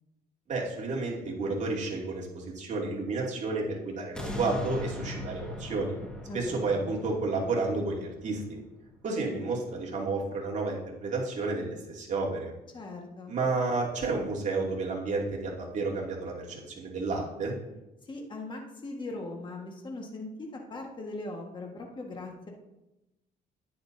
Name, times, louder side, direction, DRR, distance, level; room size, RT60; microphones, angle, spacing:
voice 1, 0.5-6.0 6.3-8.4 9.0-12.5 13.3-17.5, right 3 dB, 45° right, -3 dB, 2.6 m, -31 dB
sound 1, 4.1-9.3 9.7-9.8, left 1 dB, 5° left, 1.7 m, -39 dB
voice 2, 6.3-6.9 12.7-13.3 18.0-22.5, left 2 dB, 30° left, 1 dB, 1.6 m, -40 dB
10.5 x 9.6 x 2.7 m, 0.96 s
cardioid pair, 110°, 17 cm